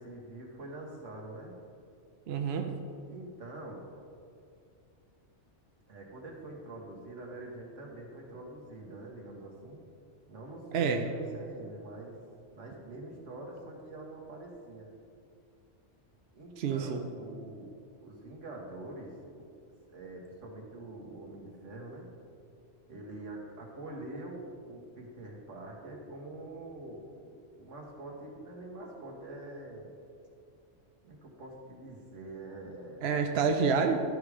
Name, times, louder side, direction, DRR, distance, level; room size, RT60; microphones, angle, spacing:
voice 1, 0.0-1.5 3.1-3.9 5.9-9.8 10.3-12.2 12.5-14.9 16.3-17.8 18.0-19.4 19.9-22.0 22.9-29.9 31.0-33.0, right 2 dB, 85° right, -1 dB, 1.7 m, -45 dB
voice 2, 2.3-2.7 10.7-11.1 16.6-17.0 33.0-34.0, right 5 dB, 65° right, 4 dB, 0.8 m, -28 dB
12.0 x 4.9 x 4.9 m, 2.4 s
omnidirectional pair, 1.2 m